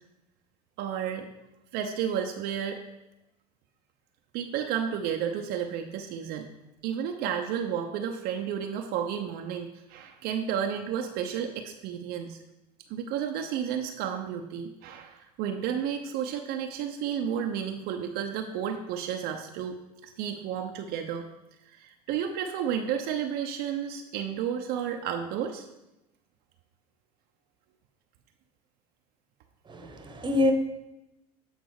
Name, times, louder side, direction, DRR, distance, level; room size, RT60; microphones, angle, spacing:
voice 1, 0.8-1.3 1.7-2.8 4.3-6.5 6.8-12.4 12.9-19.8 20.0-21.2 21.7-25.7, right 8 dB, 60° right, 3 dB, 0.7 m, -32 dB
voice 2, 29.7-30.5, left 2 dB, 25° right, 6 dB, 1.1 m, -26 dB
8.0 x 4.0 x 4.7 m, 0.93 s
hypercardioid pair, 80°, 18 cm